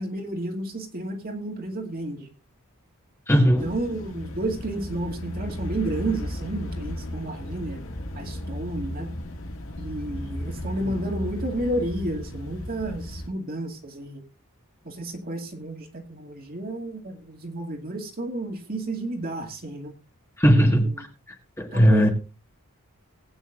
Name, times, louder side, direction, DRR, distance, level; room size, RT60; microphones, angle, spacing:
voice 1, 0.0-2.3 3.4-7.8 8.1-9.1 9.8-14.2 14.8-19.9 20.8-20.9 21.7-22.1, right 1 dB, 40° right, 3 dB, 2.3 m, -31 dB
voice 2, 3.3-3.7 20.4-21.1 21.6-22.1, equal, 10° left, 2 dB, 1.7 m, -18 dB
sound 1, 3.6-13.3, left 1 dB, 65° left, 2.1 m, -35 dB
19.5 x 9.1 x 2.5 m, 0.31 s
head